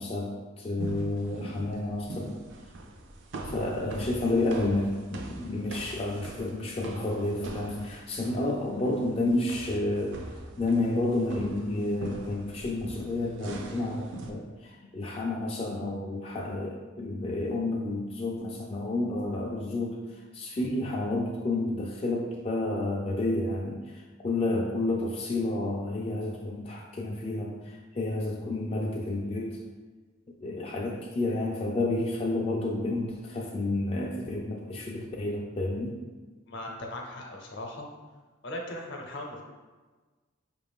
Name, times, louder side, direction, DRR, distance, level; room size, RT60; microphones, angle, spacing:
voice 1, 0.0-2.4 3.5-10.2 10.6-20.0 20.3-23.8 24.2-27.6 27.9-29.6 30.4-36.0, left 2 dB, 30° left, -1 dB, 0.3 m, -30 dB
sound 1, 0.8-14.3, right 2 dB, 65° right, 0.5 m, -42 dB
voice 2, 36.5-37.9 38.4-39.4, left 1 dB, 65° left, 0 dB, 0.7 m, -38 dB
5.0 x 2.5 x 3.5 m, 1.3 s
head